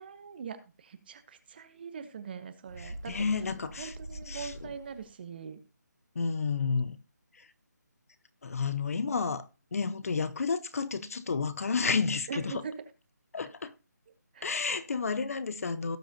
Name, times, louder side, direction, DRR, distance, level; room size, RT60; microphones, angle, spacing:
voice 1, 0.0-3.2 3.8-5.6 8.4-8.5 12.3-12.9 14.3-14.5, right 6 dB, 35° right, 1.1 m, -42 dB
Bird, 2.7-5.1, right 1 dB, 70° right, 1.8 m, -44 dB
voice 2, 2.8-3.9 4.3-4.7 6.1-7.0 7.4-7.5 8.4-12.6 13.3-13.7 14.4-16.0, left 5 dB, 50° left, 0.8 m, -31 dB
17.5 x 6.1 x 2.8 m
figure-of-eight pair, 165°, 10 cm